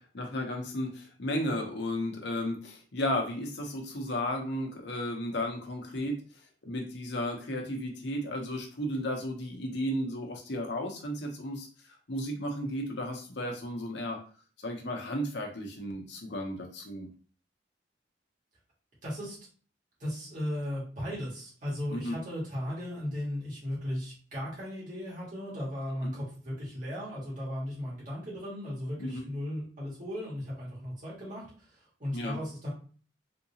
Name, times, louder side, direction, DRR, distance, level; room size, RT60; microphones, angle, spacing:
voice 1, 0.0-6.2 6.6-14.2 14.6-17.1 21.9-22.1 26.0-26.1 29.0-29.2 32.1-32.4, left 1 dB, 65° left, 2 dB, 0.8 m, -34 dB
voice 2, 19.0-19.4 20.0-32.7, equal, 45° right, -6 dB, 1.7 m, -36 dB
3.6 x 2.8 x 2.8 m, 0.40 s
head